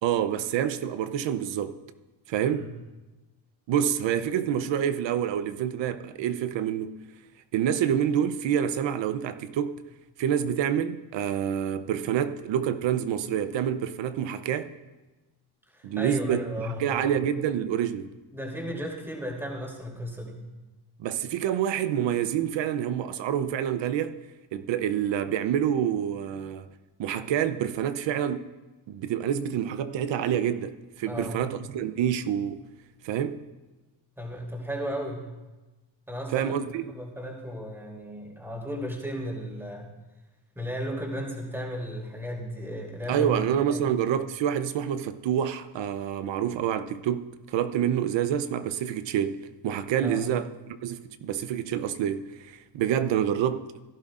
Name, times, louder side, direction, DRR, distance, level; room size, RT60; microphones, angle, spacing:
voice 1, 0.0-1.8 2.3-2.7 3.7-6.9 7.5-9.8 10.2-14.7 15.8-18.1 21.0-24.2 24.5-26.7 27.0-28.5 28.9-32.6 33.0-33.4 36.3-36.8 43.1-53.7, right 9 dB, 65° right, 0.8 m, -27 dB
voice 2, 15.7-17.0 18.3-20.4 31.1-31.4 34.2-35.2 36.1-36.5 36.9-39.9 40.5-43.3 43.7-43.9 50.0-50.2, equal, 5° right, 3.0 m, -35 dB
16.5 x 11.5 x 2.5 m
supercardioid pair, 80°, 47 cm